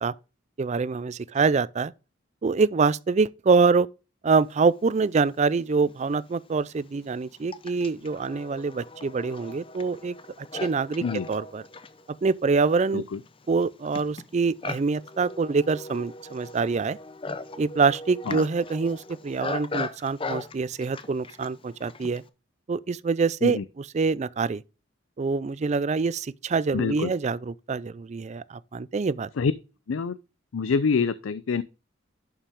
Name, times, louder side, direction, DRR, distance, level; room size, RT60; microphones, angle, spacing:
voice 1, 0.6-1.9 2.4-3.9 4.2-11.6 12.2-13.0 13.5-17.0 17.6-22.2 22.7-23.6 23.9-24.6 25.2-29.3, right 4 dB, 35° right, 0.4 m, -25 dB
Livestock farm animals working animals, 5.5-5.6 6.4-22.3, left 3 dB, 25° left, 0.6 m, -39 dB
voice 2, 26.7-27.1 29.4-29.5 29.9-30.2 30.5-31.6, left 5 dB, 85° left, 0.5 m, -26 dB
11.0 x 5.8 x 3.5 m
head